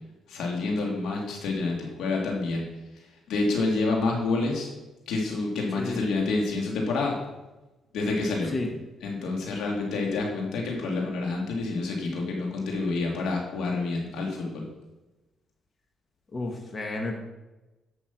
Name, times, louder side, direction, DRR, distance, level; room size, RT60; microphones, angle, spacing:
voice 1, 0.3-2.7 3.3-4.7 5.1-7.2 7.9-8.5 9.0-14.7, left 3 dB, 80° left, -1 dB, 2.8 m, -28 dB
voice 2, 16.3-17.2, left 2 dB, 35° left, 2 dB, 1.6 m, -31 dB
11.0 x 6.2 x 6.1 m, 1.1 s
cardioid pair, 90°, 0 cm